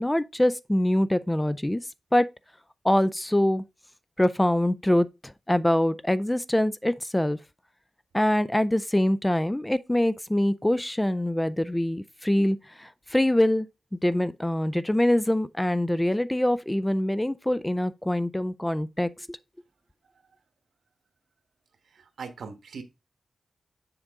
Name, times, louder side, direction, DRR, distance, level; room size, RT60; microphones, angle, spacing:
voice 1, 0.0-1.8 2.1-2.3 2.8-3.6 4.2-7.4 8.1-13.7 14.0-19.4, left 1 dB, 10° left, 0.4 m, -24 dB
voice 2, 21.9-22.8, right 5 dB, 85° right, 1.3 m, -40 dB
7.3 x 5.0 x 3.6 m
wide cardioid pair, 90°, 0 cm